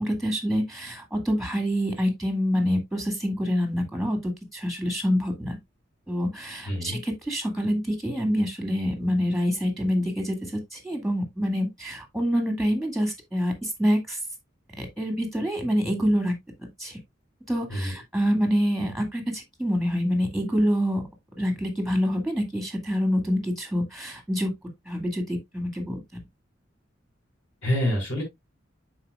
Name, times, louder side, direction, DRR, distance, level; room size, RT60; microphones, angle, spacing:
voice 1, 0.0-5.6 6.1-14.2 14.8-17.0 17.5-21.0 21.4-24.5 24.9-26.0, equal, ahead, 1.9 m, -26 dB
voice 2, 6.6-7.0 17.7-17.9 27.6-28.2, equal, 65° left, 4.5 m, -26 dB
10.5 x 4.4 x 2.4 m
head